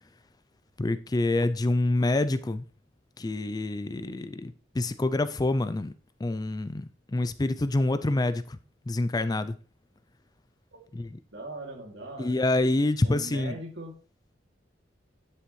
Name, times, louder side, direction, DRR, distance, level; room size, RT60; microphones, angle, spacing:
voice 1, 0.8-2.6 3.2-5.9 6.2-8.6 8.9-9.5 10.9-11.1 12.2-13.6, left 2 dB, 20° left, 0.4 m, -27 dB
voice 2, 11.3-12.4 13.0-13.9, right 2 dB, 65° right, 2.7 m, -40 dB
10.0 x 7.7 x 3.2 m
head